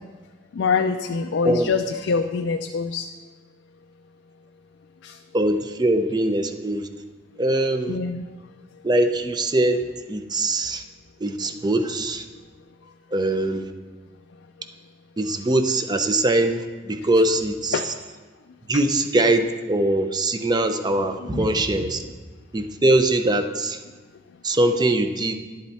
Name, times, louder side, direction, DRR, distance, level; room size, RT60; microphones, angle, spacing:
voice 1, 0.5-3.1 5.0-5.2 7.9-8.2 17.7-17.9 21.2-21.4, left 5 dB, 75° left, 6 dB, 0.4 m, -25 dB
voice 2, 5.3-6.9 7.4-8.0 8.8-10.8 11.2-12.2 13.1-13.7 15.2-17.9 18.7-22.0 22.5-23.8 24.4-25.3, right 1 dB, 25° right, 8 dB, 0.6 m, -22 dB
11.0 x 7.6 x 4.2 m, 1.4 s
head